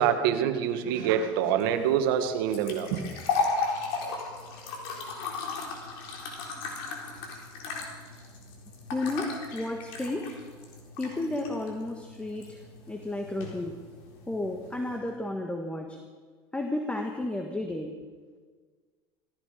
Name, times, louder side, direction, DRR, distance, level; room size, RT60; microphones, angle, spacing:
voice 1, 0.0-3.0, right 9 dB, 80° right, 8 dB, 1.6 m, -25 dB
sound 1, 1.6-15.0, left 4 dB, 75° left, 4.0 m, -36 dB
voice 2, 8.9-10.4 11.0-12.6 12.9-13.8 14.3-16.0 16.5-18.0, left 2 dB, 10° left, 4 dB, 1.6 m, -32 dB
18.0 x 15.0 x 5.0 m, 1.5 s
supercardioid pair, 100°, 12 cm